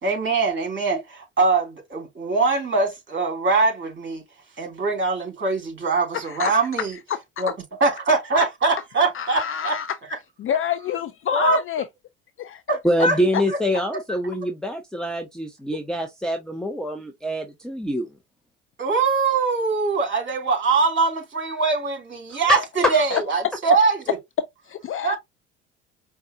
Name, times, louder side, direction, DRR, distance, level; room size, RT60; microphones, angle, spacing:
voice 1, 0.0-4.2 4.6-7.0 7.4-7.5 7.8-9.8 11.3-11.6 12.7-13.2 18.8-24.2 25.0-25.2, right 4 dB, 30° right, 3.1 m, -22 dB
voice 2, 6.1-6.5 9.1-10.0 10.4-11.8 23.1-23.2 24.7-25.1, left 9 dB, 35° left, 0.5 m, -26 dB
voice 3, 12.8-18.1 22.5-22.6, equal, ahead, 0.8 m, -25 dB
5.2 x 2.3 x 2.8 m
hypercardioid pair, 70°, 37 cm